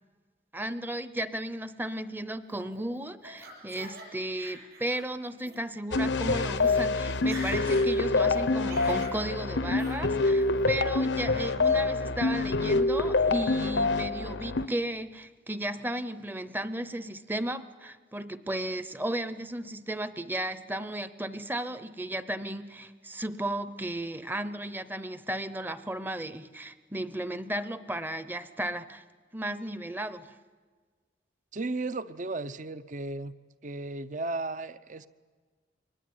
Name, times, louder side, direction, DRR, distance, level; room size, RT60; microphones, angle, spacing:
voice 1, 0.5-29.0 29.3-30.3, right 1 dB, 10° right, 13 dB, 0.8 m, -34 dB
Laughter, 2.5-4.0 4.3-5.0 5.4-5.6 6.2-6.3 6.5-6.8 7.1-7.9 8.2-9.2 9.8-10.0 10.4-10.9 11.3-11.8, right 2 dB, 60° right, 6.6 m, -45 dB
sound 1, 5.9-14.7, left 3 dB, 75° left, 0.8 m, -26 dB
voice 2, 31.5-33.3 33.6-35.1, right 2 dB, 45° right, 15 dB, 0.7 m, -34 dB
23.5 x 20.0 x 9.5 m, 1.5 s
head